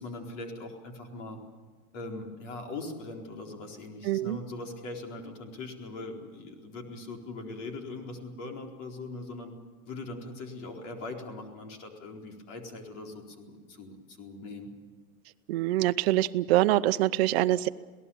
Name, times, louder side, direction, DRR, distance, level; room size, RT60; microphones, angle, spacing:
voice 1, 0.0-1.4 1.9-9.5 9.8-14.7, left 2 dB, 55° left, 2 dB, 4.3 m, -41 dB
voice 2, 4.0-4.4 15.5-17.7, right 15 dB, 45° right, 10 dB, 0.8 m, -24 dB
27.0 x 18.0 x 7.2 m, 1.4 s
supercardioid pair, 170°, 43 cm